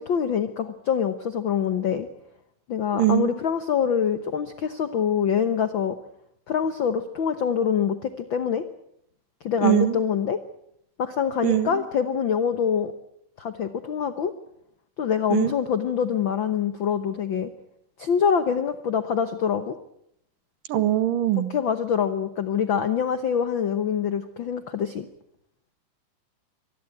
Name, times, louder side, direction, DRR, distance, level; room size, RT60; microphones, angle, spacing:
voice 1, 0.0-2.1 2.7-6.0 6.5-8.6 9.4-10.4 11.0-12.9 13.4-14.3 15.0-17.5 18.0-19.7 21.5-25.1, left 7 dB, 85° left, 10 dB, 1.0 m, -25 dB
voice 2, 2.9-3.4 9.6-10.0 11.4-11.8 15.3-15.5 20.7-21.5, right 13 dB, 85° right, 11 dB, 3.2 m, -22 dB
24.5 x 20.0 x 8.5 m, 0.76 s
omnidirectional pair, 3.8 m